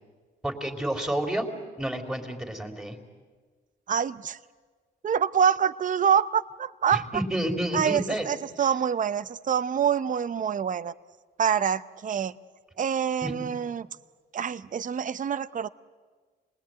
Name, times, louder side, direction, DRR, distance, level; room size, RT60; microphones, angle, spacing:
voice 1, 0.4-1.5 1.8-3.0 7.1-8.3 13.2-13.5, right 1 dB, 5° right, 5 dB, 3.6 m, -29 dB
voice 2, 3.9-4.4 5.0-7.2 7.7-10.9 11.4-12.3 12.8-13.9 14.3-15.7, right 8 dB, 40° right, 15 dB, 0.8 m, -26 dB
27.5 x 20.5 x 9.3 m, 1.5 s
cardioid pair, 90°, 20 cm